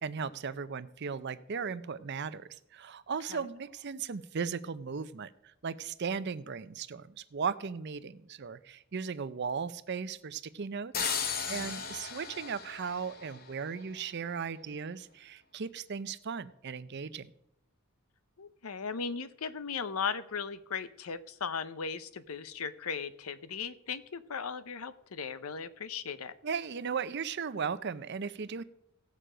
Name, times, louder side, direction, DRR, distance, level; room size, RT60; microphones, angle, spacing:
voice 1, 0.0-17.3 26.4-28.6, right 6 dB, 50° right, 14 dB, 0.5 m, -37 dB
sound 1, 10.9-13.8, left 6 dB, 45° left, 0.9 m, -36 dB
voice 2, 11.5-11.8 18.4-26.3, left 6 dB, 85° left, 14 dB, 0.7 m, -37 dB
16.5 x 6.7 x 5.0 m, 0.78 s
head